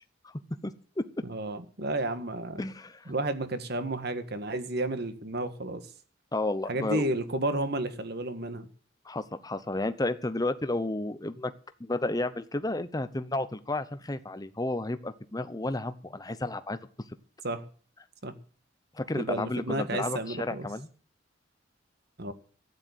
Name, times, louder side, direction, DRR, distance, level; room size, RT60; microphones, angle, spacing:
voice 1, 0.6-1.0 2.6-3.1 6.3-7.1 9.0-11.5 11.8-16.8 18.9-20.9, left 2 dB, 20° left, 12 dB, 0.8 m, -32 dB
voice 2, 1.2-2.6 3.1-5.8 6.6-8.7 17.4-17.6 18.2-18.3 19.1-20.7 22.2-22.3, right 2 dB, 55° right, 10 dB, 1.7 m, -32 dB
12.5 x 9.8 x 8.0 m, 0.42 s
head